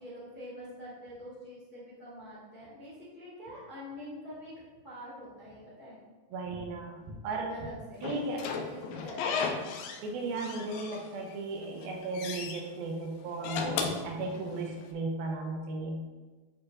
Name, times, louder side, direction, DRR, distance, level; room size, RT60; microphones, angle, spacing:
voice 1, 0.0-6.0 7.5-9.5, equal, 60° left, -8 dB, 0.5 m, -45 dB
voice 2, 6.3-7.6 8.0-8.4 10.0-16.0, right 3 dB, 80° right, 1 dB, 2.6 m, -35 dB
Slam / Squeak, 8.0-10.1 10.4-11.3 11.7-12.6 13.3-14.8, left 5 dB, 80° left, 2.3 m, -35 dB
11.0 x 4.9 x 2.5 m, 1.3 s
omnidirectional pair, 4.3 m